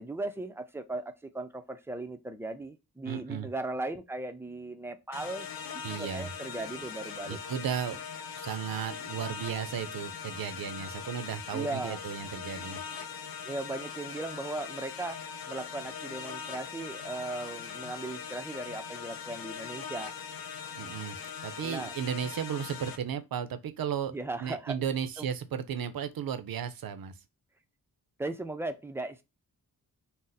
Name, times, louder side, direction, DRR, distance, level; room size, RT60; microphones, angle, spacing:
voice 1, 0.0-5.5 5.7-7.4 11.5-12.0 13.4-15.2 15.5-20.1 21.6-21.9 24.1-24.8 25.2-25.3 28.2-29.2, right 2 dB, 5° right, 0.3 m, -37 dB
voice 2, 3.1-3.5 5.8-6.3 7.3-8.0 8.4-12.8 20.7-21.2 21.4-24.1 24.4-27.1, right 8 dB, 65° right, 0.5 m, -34 dB
sound 1, 5.1-23.0, left 6 dB, 65° left, 0.5 m, -41 dB
2.6 x 2.0 x 3.9 m
wide cardioid pair, 90°, 38 cm